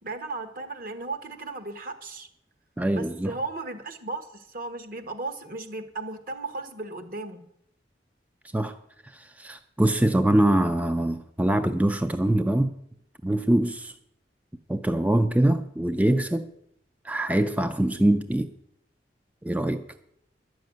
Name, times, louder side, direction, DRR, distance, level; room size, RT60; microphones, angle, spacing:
voice 1, 0.0-2.3 2.9-7.4, right 3 dB, 50° right, 1.4 m, -35 dB
voice 2, 2.8-3.3 8.5-8.8 9.0-12.8 13.2-14.0 14.7-16.5 17.0-18.5 19.4-19.9, right 1 dB, 10° right, 0.4 m, -23 dB
11.5 x 6.3 x 9.2 m
head